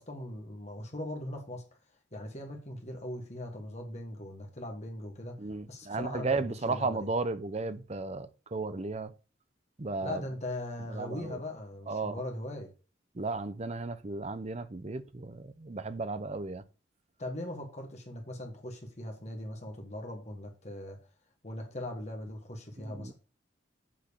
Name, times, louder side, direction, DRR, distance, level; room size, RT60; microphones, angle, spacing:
voice 1, 0.0-1.6 2.1-7.1 10.0-12.7 17.2-21.0 21.4-23.1, left 1 dB, 35° left, 1.6 m, -40 dB
voice 2, 5.4-9.1 9.8-10.2 10.9-11.4 11.9-12.2 13.1-16.6 22.8-23.1, right 3 dB, 35° right, 0.6 m, -34 dB
7.5 x 4.6 x 6.9 m
head